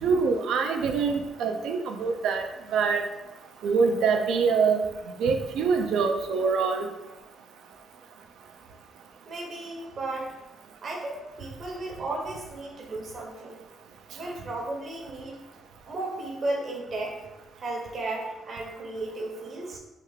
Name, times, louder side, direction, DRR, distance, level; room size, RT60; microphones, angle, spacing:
voice 1, 0.0-2.4 2.7-3.0 3.6-4.8 5.2-6.9, right 5 dB, 80° right, 5 dB, 0.4 m, -24 dB
voice 2, 9.3-10.3 10.8-13.6 14.1-15.4 15.9-17.2 17.6-19.8, right 2 dB, 50° right, -1 dB, 0.8 m, -34 dB
3.3 x 2.3 x 3.1 m, 1.0 s
cardioid pair, 90°, 0 cm